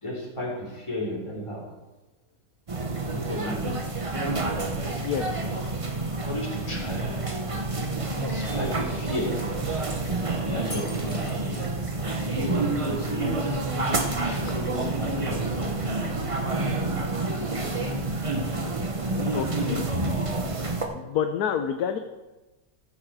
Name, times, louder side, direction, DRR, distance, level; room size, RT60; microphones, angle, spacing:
voice 1, 0.0-1.6 3.1-3.7 6.0-7.0 7.5-7.7 8.3-9.3 10.5-11.6 12.3-13.5 14.2-15.6, left 1 dB, 15° left, -5 dB, 3.2 m, -34 dB
sound 1, 2.7-20.9, right 2 dB, 25° right, 0.8 m, -28 dB
Shatter, 10.7-11.7 14.0-15.0, left 2 dB, 55° left, 2.3 m, -43 dB
voice 2, 19.3-19.9 20.9-22.0, left 8 dB, 75° left, 7 dB, 1.2 m, -28 dB
14.5 x 7.4 x 4.8 m, 1.1 s
omnidirectional pair, 1.7 m